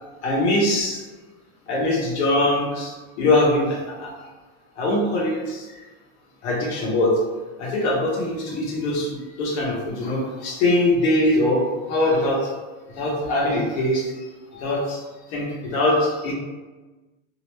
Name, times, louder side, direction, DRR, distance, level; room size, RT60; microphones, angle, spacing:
voice 1, 0.2-1.0 1.7-4.1 4.8-5.6 6.4-7.2 7.6-11.6 11.9-12.5 13.0-14.1 14.4-15.0 15.3-16.3, left 1 dB, 75° left, -3 dB, 1.0 m, -22 dB
2.7 x 2.1 x 3.2 m, 1.2 s
cardioid pair, 165°, 34 cm